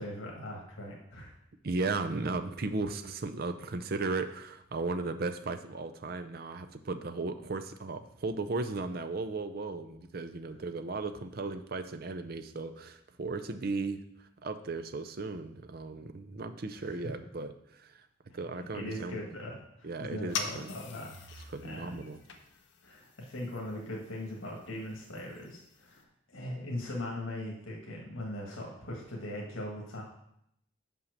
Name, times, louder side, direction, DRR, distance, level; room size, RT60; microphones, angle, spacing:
voice 1, 0.0-1.3 16.7-17.1 18.3-22.0 22.8-30.0, left 1 dB, 80° left, -2 dB, 1.7 m, -40 dB
voice 2, 1.6-14.0 14.4-18.0 18.3-19.2 19.8-20.7 21.5-22.2, right 3 dB, 50° right, 8 dB, 0.5 m, -36 dB
sound 1, 20.3-26.0, left 5 dB, 60° left, 0.8 m, -44 dB
5.8 x 5.4 x 6.5 m, 0.76 s
head